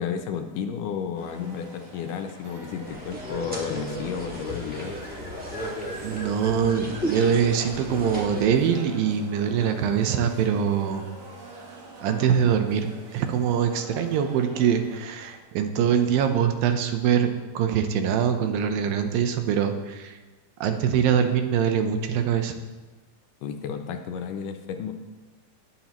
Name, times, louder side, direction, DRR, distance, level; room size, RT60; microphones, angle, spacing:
voice 1, 0.0-5.0 23.4-24.9, left 7 dB, 75° left, 6 dB, 2.1 m, -32 dB
sound 1, 1.2-15.4, right 2 dB, 55° right, 2.5 m, -44 dB
sound 2, 2.9-8.5, equal, 5° right, 0.7 m, -34 dB
voice 2, 6.0-11.0 12.0-20.1 20.6-22.6, right 8 dB, 80° right, 6 dB, 2.6 m, -23 dB
20.0 x 7.4 x 3.0 m, 1.2 s
omnidirectional pair, 4.1 m